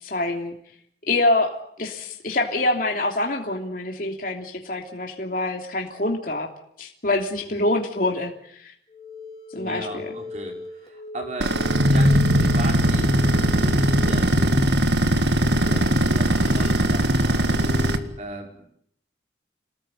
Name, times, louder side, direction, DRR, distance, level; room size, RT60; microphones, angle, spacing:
voice 1, 0.0-0.5 1.1-6.5 6.8-8.7 9.5-10.1, left 2 dB, 50° left, 1 dB, 3.1 m, -25 dB
sound 1, 8.9-18.1, left 2 dB, 30° left, 3.8 m, -39 dB
voice 2, 9.6-14.5 15.6-17.5 18.2-18.6, right 1 dB, 40° right, 1 dB, 5.8 m, -36 dB
sound 2, 11.4-18.0, right 1 dB, 75° right, 2.1 m, -20 dB
28.0 x 18.5 x 9.2 m, 0.70 s
head